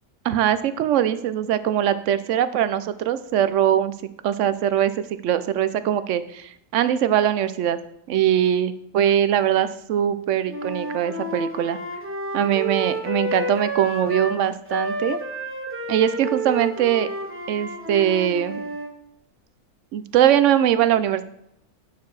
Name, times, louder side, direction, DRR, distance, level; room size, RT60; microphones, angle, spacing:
voice 1, 0.2-3.9 4.2-4.9 5.2-7.8 8.1-11.8 12.3-15.2 15.9-17.1 17.5-18.6 19.9-21.2, right 10 dB, 70° right, 13 dB, 0.8 m, -21 dB
Wind instrument woodwind instrument, 10.5-14.4 14.7-18.9, equal, 10° right, 0.7 m, -30 dB
9.3 x 4.7 x 4.7 m, 0.76 s
omnidirectional pair, 1.6 m